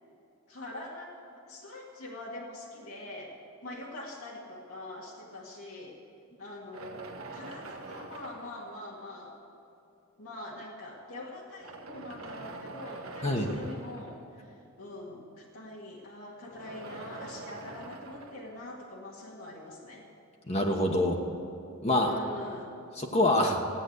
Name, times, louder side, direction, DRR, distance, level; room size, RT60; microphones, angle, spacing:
voice 1, 0.5-3.3 3.6-5.9 6.4-9.4 10.2-20.1 22.0-22.7, left 1 dB, 80° left, -4 dB, 2.1 m, -44 dB
sound 1, 6.7-9.4 10.3-10.4 11.4-14.5 16.4-19.4, right 3 dB, 80° right, 1.4 m, -45 dB
voice 2, 13.2-13.6 20.5-21.2 21.8-22.1 23.0-23.6, left 1 dB, 30° left, 1 dB, 1.2 m, -25 dB
16.5 x 9.9 x 8.1 m, 2.6 s
head